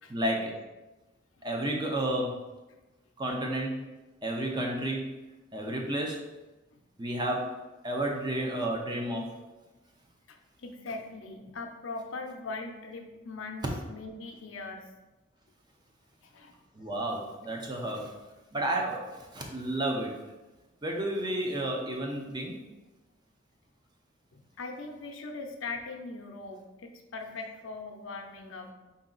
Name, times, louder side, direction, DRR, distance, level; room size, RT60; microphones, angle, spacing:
voice 1, 0.1-0.5 1.4-2.4 3.2-3.7 4.2-5.2 5.5-6.2 7.0-7.5 7.8-9.3 16.7-18.1 18.5-20.1 20.8-22.6, right 1 dB, 20° right, 0 dB, 0.6 m, -31 dB
voice 2, 10.3-14.8 16.2-16.5 24.3-28.7, left 3 dB, 85° left, 4 dB, 0.6 m, -40 dB
4.8 x 2.8 x 3.8 m, 1.1 s
head